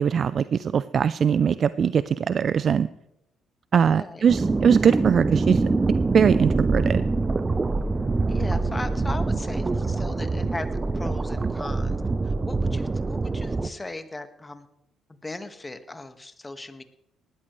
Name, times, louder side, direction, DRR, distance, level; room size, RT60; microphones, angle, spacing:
voice 1, 0.0-2.9 3.7-5.6 6.1-7.0, right 7 dB, 50° right, 16 dB, 0.4 m, -21 dB
voice 2, 3.7-4.3 8.3-10.7 10.9-14.7 15.1-16.8, left 2 dB, 20° left, 8 dB, 1.7 m, -38 dB
sound 1, 4.3-13.7, right 3 dB, 30° right, 0.8 m, -25 dB
19.5 x 14.0 x 3.3 m, 0.84 s
hypercardioid pair, 50°, 0 cm